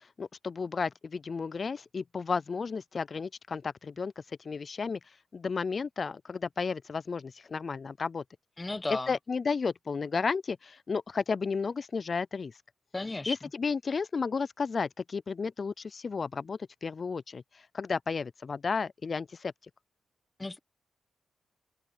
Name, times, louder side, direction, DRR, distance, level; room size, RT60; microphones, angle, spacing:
voice 1, 0.2-4.1 4.4-5.0 5.3-8.2 9.1-12.5 13.3-17.4 17.7-19.5, left 5 dB, 45° left, 0.3 m, -33 dB
voice 2, 8.6-9.2 12.9-13.5 20.4-20.6, left 2 dB, 25° left, 1.3 m, -34 dB
open air
cardioid pair, 80°, 0 cm